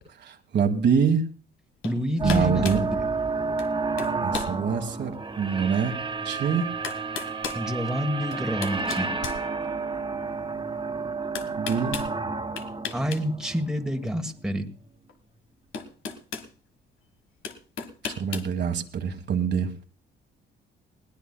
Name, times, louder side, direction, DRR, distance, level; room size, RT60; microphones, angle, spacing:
voice 1, 0.2-1.2 2.2-2.8 4.2-6.0 6.2-6.7 11.6-12.0 18.2-19.7, right 6 dB, 60° right, 6 dB, 1.5 m, -25 dB
sound 1, 1.8-2.0 2.3-2.9 3.6-3.7 4.0-4.6 5.1-5.2 6.3-6.4 6.8-7.6 8.3-10.0 11.3-12.1 12.6-13.2 13.5-13.7 15.1-15.2 15.7-16.5 17.4-18.5, left 6 dB, 80° left, 1.5 m, -35 dB
voice 2, 1.8-3.0 7.5-9.1 12.9-14.6, equal, 5° right, 4 dB, 1.4 m, -28 dB
sound 2, 2.2-14.3, right 4 dB, 25° right, 1.5 m, -31 dB
20.5 x 18.0 x 2.2 m, 0.36 s
cardioid pair, 90°, 20 cm